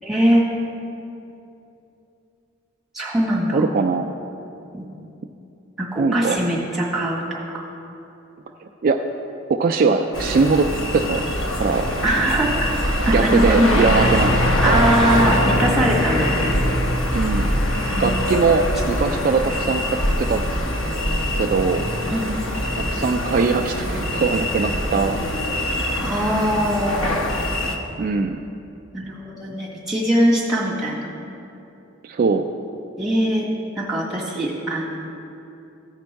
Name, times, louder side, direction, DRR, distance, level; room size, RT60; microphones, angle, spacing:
voice 1, 0.0-0.4 2.9-3.7 4.7-4.8 5.8-7.6 12.0-12.7 13.0-14.2 14.6-16.3 17.9-18.3 22.1-22.3 26.0-27.2 28.9-31.1 33.0-33.5 33.7-35.1, right 1 dB, ahead, -6 dB, 1.8 m, -22 dB
voice 2, 3.5-4.1 6.0-6.4 8.8-9.0 9.5-11.2 11.5-11.9 13.1-14.3 14.7-14.9 17.1-17.5 17.9-19.8 20.2-20.4 21.3-21.8 22.8-25.2 28.0-28.4 32.0-32.5, right 4 dB, 45° right, 5 dB, 0.3 m, -21 dB
sound 1, 10.1-27.8, left 1 dB, 90° left, 1.0 m, -23 dB
15.5 x 5.2 x 4.6 m, 2.8 s
head